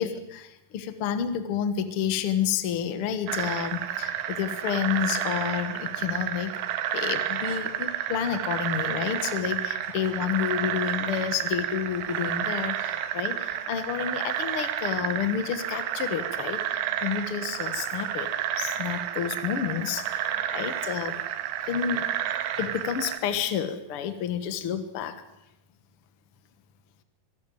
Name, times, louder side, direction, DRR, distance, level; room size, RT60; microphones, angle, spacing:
voice 1, 0.0-6.5 6.9-18.3 18.6-21.2 21.7-22.1 22.6-25.2, left 8 dB, 85° left, 10 dB, 1.2 m, -30 dB
sound 1, 3.3-23.2, right 11 dB, 80° right, 3.2 m, -31 dB
24.5 x 12.5 x 9.1 m, 0.91 s
omnidirectional pair, 4.8 m